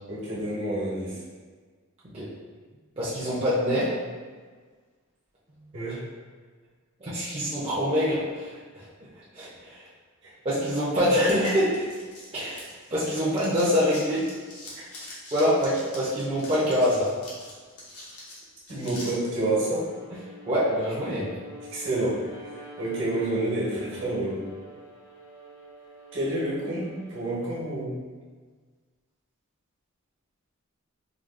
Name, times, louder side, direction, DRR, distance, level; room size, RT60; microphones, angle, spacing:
voice 1, 0.1-1.2 5.7-6.0 10.2-10.3 18.7-19.9 21.7-22.5 22.8-24.4 26.1-28.0, right 1 dB, 60° right, -6 dB, 1.3 m, -29 dB
voice 2, 3.0-3.9 7.0-8.9 9.3-9.8 10.4-11.9 12.3-14.2 15.3-17.1 20.5-21.3, equal, 25° right, -9 dB, 0.7 m, -25 dB
sound 1, 11.2-13.1 13.3-19.1, left 1 dB, 85° left, 1.1 m, -43 dB
Bowed string instrument, 19.2-27.6, left 1 dB, 55° left, 0.6 m, -46 dB
4.9 x 2.4 x 2.5 m, 1.5 s
head